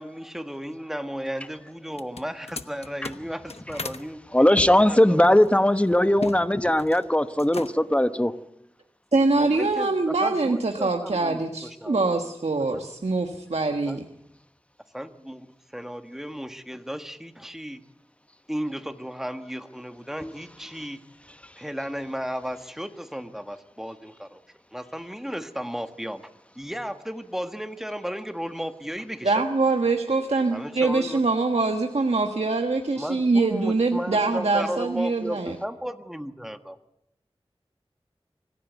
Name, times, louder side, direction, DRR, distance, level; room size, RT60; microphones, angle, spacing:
voice 1, 0.0-5.4 9.3-12.0 12.7-12.8 13.9-14.1 14.9-15.5 15.7-17.8 18.5-21.0 21.6-24.4 24.7-26.2 26.5-29.4 30.5-31.2 33.0-36.8, equal, 5° right, 1.5 m, -34 dB
sound 1, 1.9-4.0 4.5-6.4 6.7-7.1 7.4-8.0, left 3 dB, 80° left, 1.0 m, -37 dB
voice 2, 4.3-8.3 20.2-20.3, left 1 dB, 10° left, 1.0 m, -19 dB
voice 3, 9.1-14.0 29.2-35.6, right 3 dB, 90° right, 1.4 m, -24 dB
25.0 x 16.0 x 8.1 m
wide cardioid pair, 55°, 11 cm